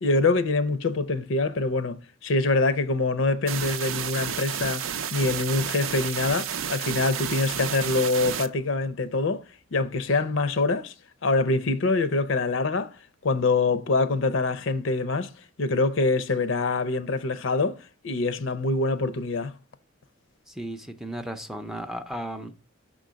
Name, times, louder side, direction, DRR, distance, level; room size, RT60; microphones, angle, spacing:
voice 1, 0.0-9.4 9.7-10.9 11.2-12.9 13.2-15.3 15.6-17.8 18.0-19.5, left 3 dB, 70° left, 0.6 m, -25 dB
sound 1, 3.5-8.5, right 8 dB, 85° right, 0.5 m, -31 dB
voice 2, 20.5-22.6, right 1 dB, ahead, 0.5 m, -35 dB
6.1 x 3.8 x 6.1 m
head